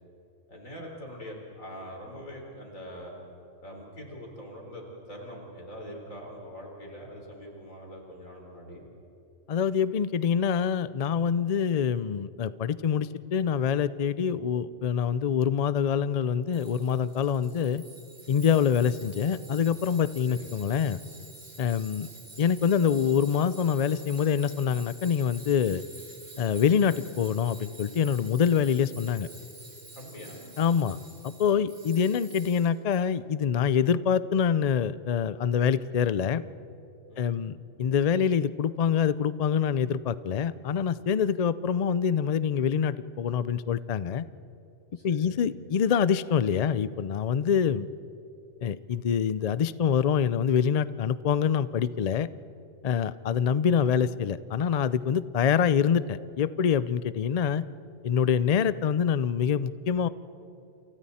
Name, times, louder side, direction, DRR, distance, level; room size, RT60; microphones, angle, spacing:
voice 1, 0.5-3.1 3.6-8.8 20.3-20.5 30.0-30.5 37.1-37.5 45.0-45.3, equal, 85° left, 0 dB, 4.7 m, -43 dB
voice 2, 9.5-17.8 18.3-21.0 21.6-22.1 22.4-25.8 26.4-29.3 30.6-31.0 31.2-36.4 37.2-44.3 45.0-47.9 48.6-52.3 52.8-57.6 58.0-60.1, left 7 dB, 55° left, 16 dB, 0.4 m, -25 dB
Tools, 16.5-33.0, right 2 dB, 80° right, 3.5 m, -49 dB
29.0 x 29.0 x 4.3 m, 2.9 s
omnidirectional pair, 1.3 m